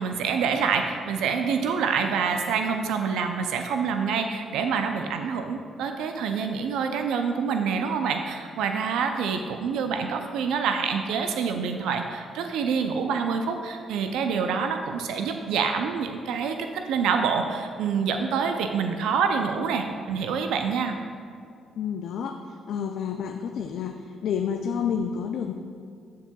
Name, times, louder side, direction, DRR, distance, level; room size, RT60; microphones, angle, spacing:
voice 1, 0.0-21.0, right 6 dB, 80° right, 5 dB, 0.4 m, -26 dB
voice 2, 21.8-22.4 22.7-25.5, left 7 dB, 75° left, 5 dB, 0.3 m, -29 dB
13.5 x 4.7 x 2.3 m, 2.3 s
supercardioid pair, 60°, 0 cm